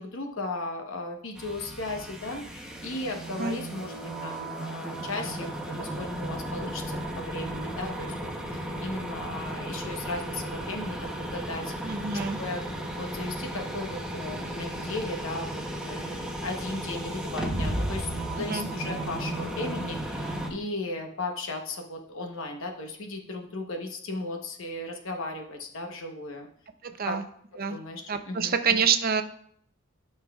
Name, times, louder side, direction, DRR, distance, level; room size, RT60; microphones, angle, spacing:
voice 1, 0.0-3.9 4.2-11.9 12.4-15.5 15.8-26.5 27.1-27.2 27.7-28.5, left 2 dB, 65° left, 3 dB, 1.0 m, -36 dB
sound 1, 1.4-20.5, right 1 dB, 5° right, 0.8 m, -34 dB
voice 2, 11.8-12.4 18.4-18.7 26.8-27.2 27.6-27.8 28.1-29.2, right 6 dB, 45° right, 8 dB, 0.6 m, -27 dB
12.5 x 5.7 x 2.4 m, 0.63 s
head